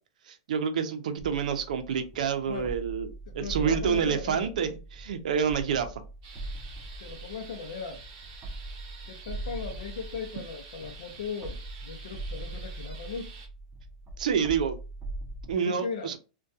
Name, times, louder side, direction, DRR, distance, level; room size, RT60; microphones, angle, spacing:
voice 1, 0.3-3.1 3.3-5.9 14.2-14.8 15.5-16.2, right 7 dB, 75° right, 0.5 m, -28 dB
sound 1, 1.2-15.6, right 2 dB, 20° right, 0.3 m, -41 dB
voice 2, 3.3-4.5 7.0-8.0 9.1-13.3 15.5-16.1, left 5 dB, 65° left, 0.5 m, -38 dB
sound 2, 6.2-13.5, right 5 dB, 35° right, 0.7 m, -49 dB
2.6 x 2.2 x 2.3 m
supercardioid pair, 170°, 4 cm